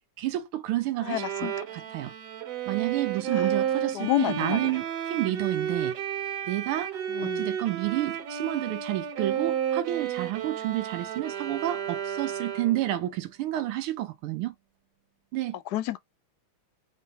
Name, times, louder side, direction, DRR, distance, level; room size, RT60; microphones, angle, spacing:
voice 1, 0.2-2.1 2.7-4.8 5.1-5.9 6.5-14.5 15.3-15.6, right 14 dB, 90° right, 1.6 m, -30 dB
voice 2, 1.1-1.5 3.9-4.6 5.3-5.4 7.1-7.5 15.7-16.0, left 14 dB, 85° left, 0.9 m, -28 dB
Bowed string instrument, 1.1-12.9, right 9 dB, 60° right, 1.2 m, -32 dB
3.8 x 3.4 x 4.0 m
omnidirectional pair, 2.3 m